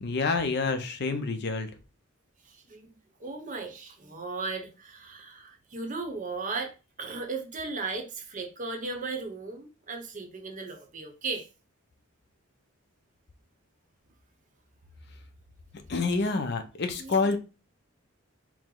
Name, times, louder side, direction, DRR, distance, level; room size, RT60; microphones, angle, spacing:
voice 1, 0.0-1.7 15.9-17.4, left 4 dB, 50° left, 0.6 m, -27 dB
voice 2, 2.4-2.9 3.2-6.7 7.0-11.5 17.0-17.3, right 3 dB, 35° right, 0.8 m, -36 dB
4.8 x 2.0 x 3.7 m
head